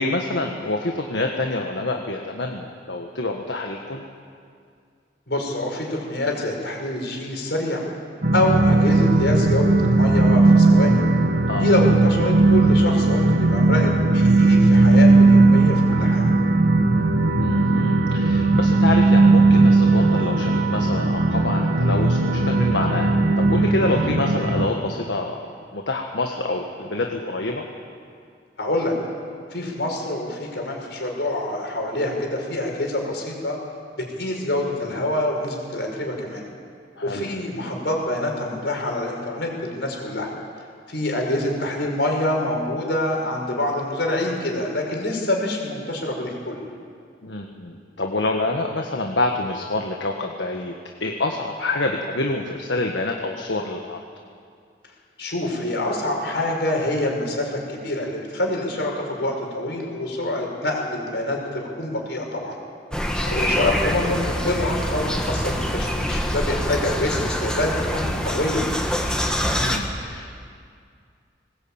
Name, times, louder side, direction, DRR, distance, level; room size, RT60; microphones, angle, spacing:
voice 1, 0.0-4.0 11.5-11.7 17.4-25.5 25.7-27.6 37.0-37.3 47.2-50.8 51.0-54.0 63.1-63.6 69.6-70.3, left 2 dB, 90° left, 2 dB, 1.6 m, -27 dB
voice 2, 5.3-7.8 8.3-11.0 11.6-16.2 23.9-24.1 28.6-28.9 29.5-33.6 33.9-36.4 37.0-40.3 40.9-46.6 55.2-62.6 63.3-68.7, left 1 dB, 70° left, 1 dB, 5.7 m, -26 dB
sound 1, 8.2-24.7, right 2 dB, 60° right, 1.6 m, -17 dB
sound 2, 62.9-69.8, equal, 5° left, 1.9 m, -25 dB
21.0 x 20.0 x 8.9 m, 2.2 s
head